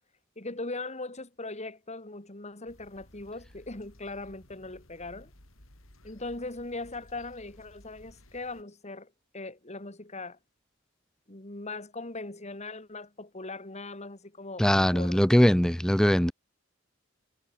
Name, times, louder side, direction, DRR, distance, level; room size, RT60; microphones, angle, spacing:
voice 1, 0.4-5.3 6.0-10.4 11.3-14.6 14.9-15.2, left 2 dB, 35° left, 3.2 m, -40 dB
sound 1, 2.7-8.6, left 1 dB, 90° left, 5.5 m, -56 dB
voice 2, 14.6-16.3, equal, 5° left, 0.5 m, -21 dB
head